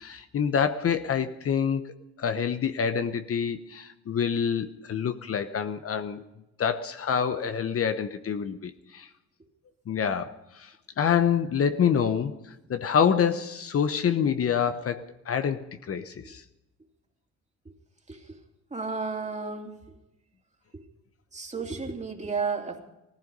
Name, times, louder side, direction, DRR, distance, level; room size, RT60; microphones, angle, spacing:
voice 1, 0.0-1.9 2.2-6.2 6.6-9.1 9.9-16.4, left 7 dB, 50° left, 10 dB, 0.9 m, -27 dB
voice 2, 18.7-19.7 20.7-20.8 21.3-22.8, right 4 dB, 25° right, 2 dB, 2.9 m, -32 dB
17.0 x 15.0 x 5.4 m, 0.94 s
cardioid pair, 90°, 30 cm